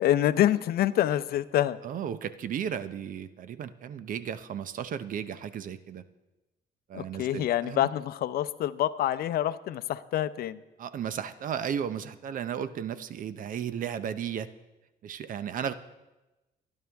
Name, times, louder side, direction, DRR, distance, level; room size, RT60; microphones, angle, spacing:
voice 1, 0.0-1.8 6.9-10.6, left 12 dB, 65° left, 14 dB, 0.6 m, -26 dB
voice 2, 1.8-6.0 6.9-7.9 10.8-14.5 15.0-15.7, right 8 dB, 55° right, 13 dB, 0.8 m, -34 dB
24.0 x 10.5 x 3.5 m, 1.0 s
cardioid pair, 110°, 17 cm